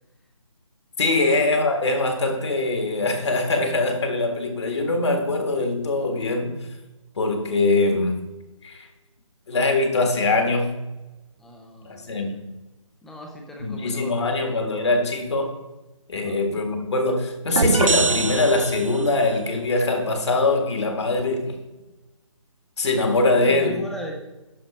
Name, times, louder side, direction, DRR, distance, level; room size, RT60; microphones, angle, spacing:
voice 1, 1.0-6.7 7.2-8.2 8.6-8.8 9.5-10.8 11.8-12.4 13.6-15.6 16.1-21.6 22.8-23.8, left 2 dB, 55° left, 1.7 m, -22 dB
voice 2, 11.4-12.3 13.0-14.6 16.1-16.4 23.4-24.1, equal, ahead, 0.4 m, -39 dB
sound 1, 17.6-19.3, right 4 dB, 70° right, 0.7 m, -23 dB
11.0 x 3.9 x 5.4 m
figure-of-eight pair, 150°, 17 cm